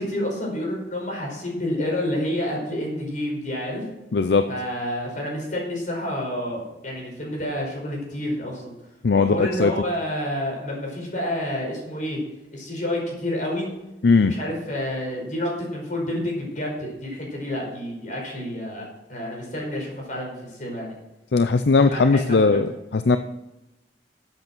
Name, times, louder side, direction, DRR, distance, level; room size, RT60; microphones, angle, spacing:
voice 1, 0.0-3.8 4.5-8.7 9.1-12.2 12.5-13.7 14.2-20.9 21.8-22.6, left 1 dB, 50° left, -1 dB, 5.0 m, -29 dB
voice 2, 4.1-4.5 9.0-9.7 14.0-14.3 21.3-23.2, left 4 dB, 70° left, 10 dB, 0.5 m, -18 dB
12.5 x 8.2 x 6.1 m, 0.94 s
head